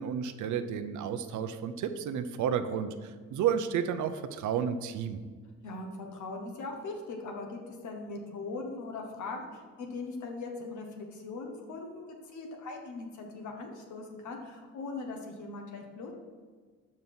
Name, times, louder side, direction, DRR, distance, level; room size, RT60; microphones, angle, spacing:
voice 1, 0.0-2.9 3.3-5.2, right 8 dB, 75° right, 10 dB, 0.6 m, -31 dB
voice 2, 5.6-16.1, left 3 dB, 75° left, 2 dB, 1.3 m, -40 dB
5.5 x 5.4 x 6.1 m, 1.5 s
cardioid pair, 90°, 30 cm